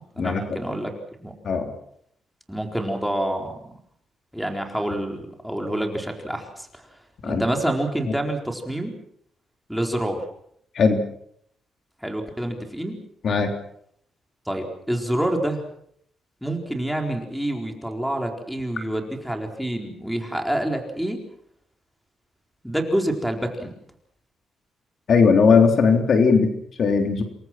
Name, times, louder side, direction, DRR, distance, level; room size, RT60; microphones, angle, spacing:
voice 1, 0.2-0.9 1.2-1.3 2.5-3.6 4.3-6.8 7.2-8.9 9.7-10.3 12.0-13.0 14.5-15.6 16.4-21.2 22.6-23.7, right 1 dB, ahead, 2 dB, 4.3 m, -27 dB
voice 2, 25.1-27.2, left 5 dB, 55° left, 5 dB, 3.5 m, -18 dB
28.5 x 22.5 x 6.1 m, 0.69 s
cardioid pair, 120°, 0 cm